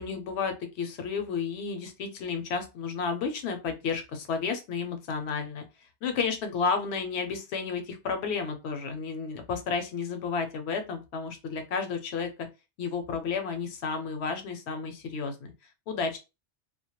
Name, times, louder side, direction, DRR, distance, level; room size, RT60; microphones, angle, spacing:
voice 1, 0.0-5.6 6.0-12.3 12.8-15.5 15.9-16.2, left 5 dB, 70° left, 6 dB, 0.8 m, -32 dB
2.2 x 2.1 x 2.8 m, 0.28 s
omnidirectional pair, 1.2 m